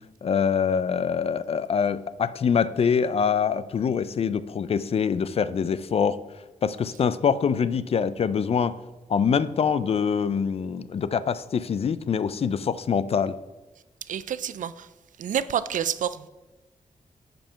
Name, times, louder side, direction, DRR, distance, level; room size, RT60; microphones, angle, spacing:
voice 1, 0.2-6.2 6.6-8.8 9.1-13.4, left 6 dB, 50° left, 0.4 m, -24 dB
voice 2, 14.1-14.9 15.2-16.3, right 9 dB, 75° right, 0.4 m, -28 dB
7.3 x 5.2 x 5.6 m
wide cardioid pair, 120°, 14 cm